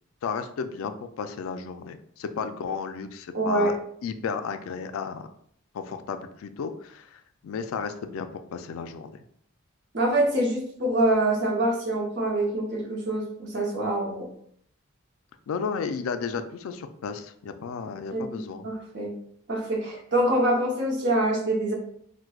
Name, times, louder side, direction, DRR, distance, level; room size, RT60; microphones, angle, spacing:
voice 1, 0.2-3.8 4.0-5.3 5.7-9.2 15.5-18.7, left 5 dB, 85° left, 9 dB, 0.3 m, -33 dB
voice 2, 3.3-3.7 9.9-14.3 18.1-19.1 19.5-21.7, right 1 dB, 55° right, -1 dB, 0.8 m, -25 dB
4.5 x 2.1 x 2.3 m, 0.66 s
head